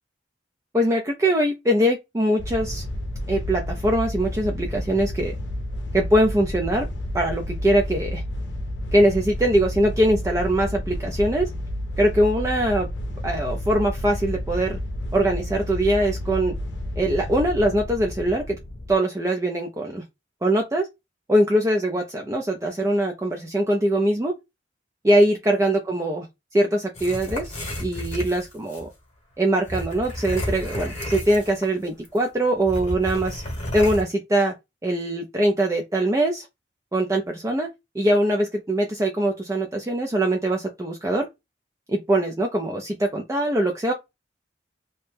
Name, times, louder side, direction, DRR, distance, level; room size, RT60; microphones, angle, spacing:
voice 1, 0.7-2.8 3.3-5.3 5.9-6.9 7.1-8.2 8.9-11.5 12.0-12.9 13.2-14.8 15.1-16.5 17.0-18.6 18.9-20.0 20.4-20.9 21.3-24.3 25.0-26.3 26.5-28.9 29.4-33.4 33.7-34.5 34.8-36.5 36.9-37.7 37.9-41.3 41.9-43.9, right 1 dB, 15° right, 0.4 m, -22 dB
sound 1, 2.4-18.9, left 1 dB, 70° left, 0.6 m, -31 dB
sound 2, 27.0-28.9 29.6-31.8 32.1-32.2 32.6-34.0, left 1 dB, 40° left, 1.0 m, -31 dB
2.7 x 2.1 x 3.3 m
head